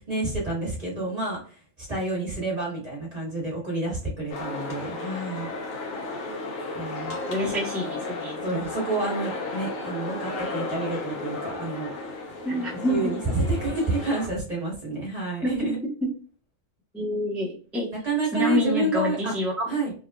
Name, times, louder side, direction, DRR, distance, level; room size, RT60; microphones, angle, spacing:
voice 1, 0.0-5.5 6.7-7.1 7.4-7.5 8.4-12.2 12.7-15.8 18.0-19.4 19.7-19.9, right 2 dB, 30° right, -5 dB, 1.6 m, -29 dB
sound 1, 4.3-14.3, left 2 dB, 80° left, 1.2 m, -34 dB
voice 2, 7.1-8.4 12.4-13.1 15.4-15.6 16.0-16.1 16.9-17.9 18.3-19.6, left 1 dB, ahead, -7 dB, 0.6 m, -27 dB
3.7 x 2.4 x 2.2 m, 0.42 s
omnidirectional pair, 1.4 m